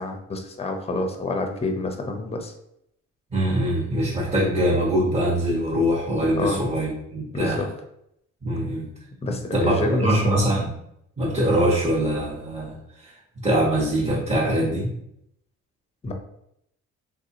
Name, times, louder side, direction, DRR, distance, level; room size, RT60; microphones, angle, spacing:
voice 1, 0.0-2.5 6.3-6.6 7.3-7.7 9.2-10.5 16.0-16.1, left 2 dB, 20° left, 4 dB, 0.6 m, -28 dB
voice 2, 3.3-7.6 8.4-8.9 9.5-10.7 11.2-13.1 13.4-14.9, right 1 dB, 20° right, -10 dB, 1.2 m, -23 dB
3.5 x 2.7 x 2.7 m, 0.76 s
cardioid pair, 90°, 30 cm